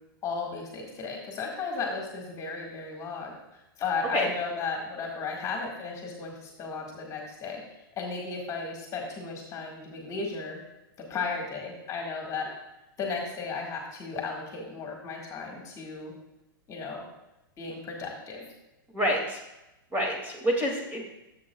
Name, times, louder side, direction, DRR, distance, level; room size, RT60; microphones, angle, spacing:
voice 1, 0.2-7.6 8.0-10.6 11.0-12.5 13.0-16.1 16.7-17.0 17.6-18.4, left 4 dB, 25° left, 0 dB, 1.8 m, -35 dB
voice 2, 18.9-19.4 19.9-21.0, equal, 15° right, -1 dB, 2.3 m, -27 dB
13.5 x 7.8 x 2.3 m, 0.94 s
hypercardioid pair, 130°, 12 cm